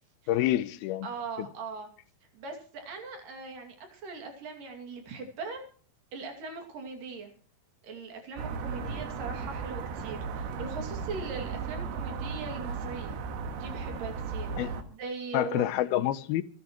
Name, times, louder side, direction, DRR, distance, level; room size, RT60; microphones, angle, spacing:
voice 1, 0.3-1.1 8.8-8.9 14.6-14.7 15.3-16.4, left 13 dB, 80° left, 2.6 m, -27 dB
voice 2, 1.0-1.9 2.3-5.7 6.1-7.3 7.8-13.2 13.5-15.6, right 4 dB, 60° right, 4.1 m, -40 dB
sound 1, 8.4-14.8, right 5 dB, 85° right, 3.4 m, -36 dB
27.0 x 10.5 x 3.1 m
omnidirectional pair, 4.4 m